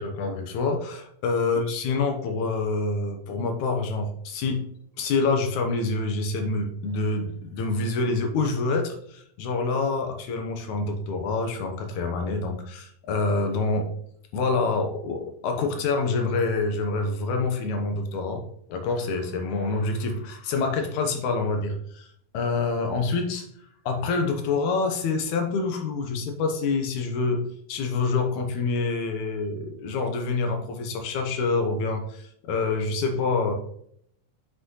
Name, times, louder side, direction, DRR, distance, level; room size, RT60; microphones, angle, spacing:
voice 1, 0.0-4.7 5.0-13.9 14.3-18.4 18.7-22.1 22.3-23.5 23.9-27.4 27.7-33.6, left 3 dB, 70° left, 4 dB, 2.4 m, -26 dB
7.9 x 6.1 x 3.1 m, 0.67 s
omnidirectional pair, 3.8 m